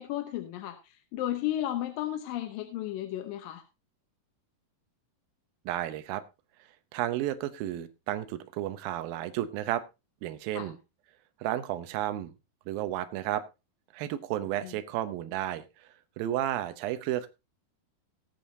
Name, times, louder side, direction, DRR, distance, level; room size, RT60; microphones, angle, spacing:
voice 1, 0.0-3.6 10.5-10.7 14.6-14.7, left 13 dB, 75° left, 8 dB, 2.5 m, -34 dB
voice 2, 5.7-6.2 6.9-9.8 10.2-10.8 11.4-12.3 12.7-13.4 13.9-15.9 16.2-17.3, right 13 dB, 75° right, 11 dB, 2.6 m, -32 dB
19.0 x 8.3 x 2.7 m, 0.25 s
omnidirectional pair, 4.3 m